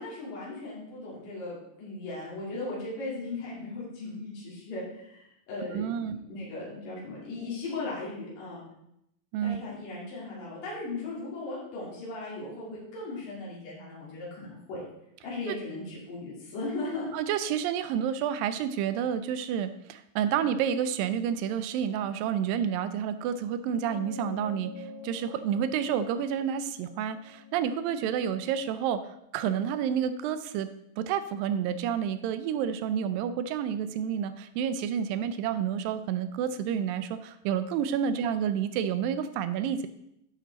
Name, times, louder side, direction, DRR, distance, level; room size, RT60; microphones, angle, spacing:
voice 1, 0.0-8.6 9.4-14.8 15.2-17.1, left 2 dB, 70° left, -7 dB, 4.1 m, -37 dB
voice 2, 5.7-6.2 9.3-9.6 17.1-29.0 29.3-30.7 31.0-39.9, right 8 dB, 85° right, 11 dB, 2.2 m, -29 dB
sound 1, 23.6-28.4, left 5 dB, 45° left, 4.6 m, -45 dB
10.0 x 5.5 x 4.0 m, 0.79 s
omnidirectional pair, 4.0 m